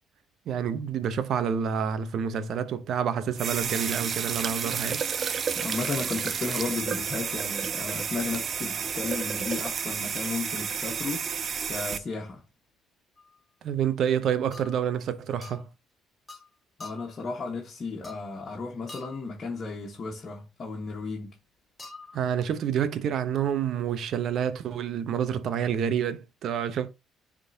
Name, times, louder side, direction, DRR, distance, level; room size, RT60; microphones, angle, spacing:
voice 1, 0.5-5.0 13.6-15.7 22.1-26.9, right 8 dB, 60° right, 0.8 m, -28 dB
sound 1, 3.3-12.0, right 6 dB, 45° right, 0.5 m, -31 dB
voice 2, 5.5-11.3 11.7-12.4 16.8-21.4, left 4 dB, 40° left, 1.5 m, -34 dB
sound 2, 13.2-13.3 14.5-14.9 15.4-15.7 16.3-16.5 16.8-17.2 18.0-18.4 18.9-19.3 21.8-22.2, left 3 dB, 15° left, 2.5 m, -45 dB
9.7 x 3.8 x 2.8 m
cardioid pair, 95°, 0 cm